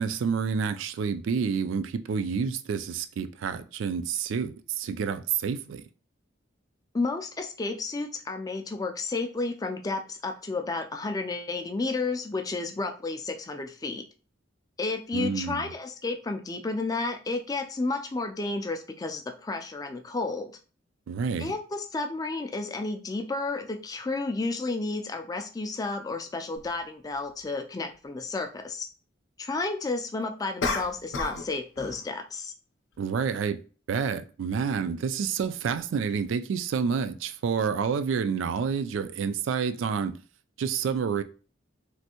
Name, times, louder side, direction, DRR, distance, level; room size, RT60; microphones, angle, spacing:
voice 1, 0.0-5.8 15.1-15.6 21.1-21.5 33.0-33.6 33.9-40.1 40.6-41.2, right 6 dB, 75° right, 0.3 m, -29 dB
voice 2, 6.9-14.0 14.8-20.5 21.4-28.9 29.4-32.5, left 3 dB, 20° left, 0.3 m, -32 dB
sound 1, 26.6-26.7 30.6-31.5 31.8-32.1, left 3 dB, 70° left, 0.5 m, -30 dB
3.2 x 2.6 x 2.8 m
head